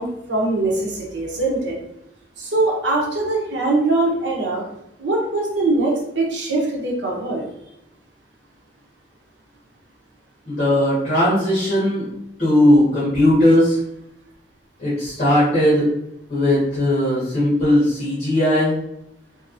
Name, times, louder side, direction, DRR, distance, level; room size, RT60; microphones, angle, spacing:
voice 1, 0.0-1.8 2.4-4.6 5.0-7.4, right 2 dB, 90° right, -2 dB, 0.9 m, -22 dB
voice 2, 10.5-12.1 12.4-13.8 14.8-15.9 16.3-18.7, left 1 dB, 40° left, -11 dB, 1.4 m, -18 dB
3.4 x 2.9 x 2.6 m, 0.82 s
head